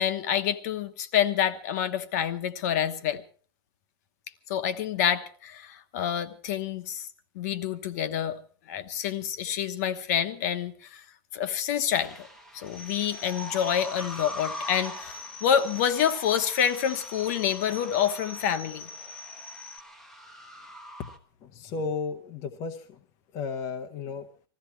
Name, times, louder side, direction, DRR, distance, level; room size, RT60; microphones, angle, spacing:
voice 1, 0.0-3.2 4.5-7.1 7.3-8.4 8.7-11.0 11.3-12.3 12.5-18.9, left 9 dB, 40° left, 1.2 m, -27 dB
sound 1, 12.0-21.2, equal, 5° left, 1.0 m, -43 dB
sound 2, 12.7-19.8, left 2 dB, 60° left, 1.3 m, -44 dB
voice 2, 21.4-23.0 23.3-24.3, left 5 dB, 25° left, 0.9 m, -34 dB
20.5 x 15.0 x 4.5 m
supercardioid pair, 180°, 13 cm